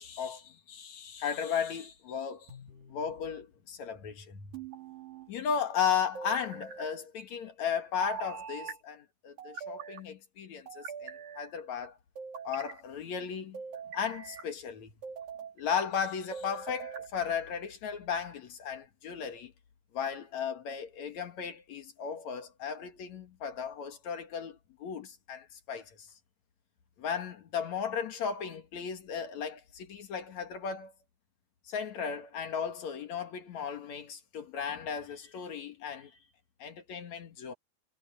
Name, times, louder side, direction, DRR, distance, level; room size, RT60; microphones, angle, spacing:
voice 1, 0.0-2.5 2.9-4.5 5.3-12.0 12.4-13.6 13.9-14.9 15.6-19.5 19.9-26.1 27.0-30.9 31.6-36.2 36.6-37.5, left 7 dB, 55° left, 2.4 m, -35 dB
sound 1, 2.5-3.2 4.5-5.3 6.1-6.9 8.0-8.8 9.4-10.0 10.7-11.5 12.2-12.8 13.5-14.5 15.0-15.6 16.3-17.1, right 6 dB, 55° right, 6.5 m, -42 dB
omnidirectional pair, 4.8 m